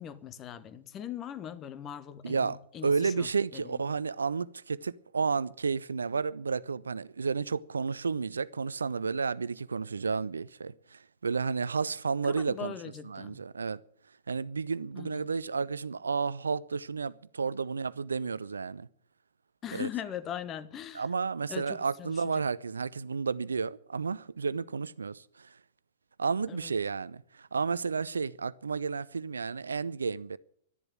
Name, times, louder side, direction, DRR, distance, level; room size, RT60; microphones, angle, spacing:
voice 1, 0.0-3.8 12.2-13.4 15.0-15.3 19.6-21.1 21.5-22.4 26.5-26.7, left 9 dB, 25° left, 1.2 m, -41 dB
voice 2, 2.2-12.7 13.1-13.8 14.3-18.9 19.7-19.9 20.9-25.5 26.2-30.4, right 5 dB, 70° right, 0.5 m, -32 dB
12.5 x 11.0 x 10.0 m
figure-of-eight pair, 105°, 0 cm